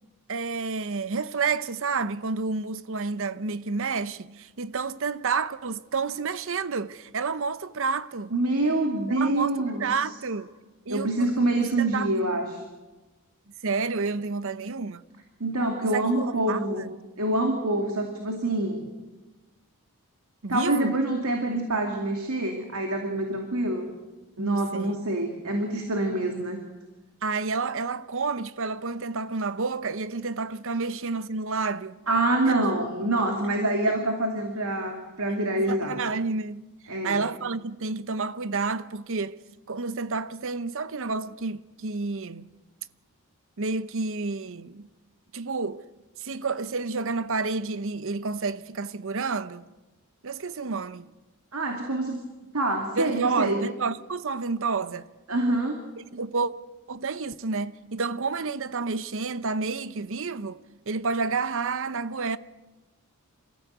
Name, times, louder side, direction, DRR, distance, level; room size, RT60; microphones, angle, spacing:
voice 1, 0.3-8.3 9.1-10.5 10.9-12.1 13.6-15.0 15.8-16.9 20.4-20.9 24.4-25.0 27.2-32.0 32.5-32.7 35.7-36.6 37.0-39.4 39.7-42.5 43.6-44.9 45.3-45.8 46.2-49.7 50.2-51.1 52.9-55.1 56.1-56.5 56.9-60.6 60.9-62.4, right 4 dB, 60° right, 0.8 m, -30 dB
voice 2, 8.3-9.9 10.9-12.6 15.4-16.8 17.2-18.9 20.5-23.9 24.4-26.6 32.1-36.0 36.9-37.2 51.5-52.2 52.5-53.6 55.3-55.8, right 2 dB, 80° right, 2.5 m, -26 dB
27.0 x 15.0 x 8.1 m
head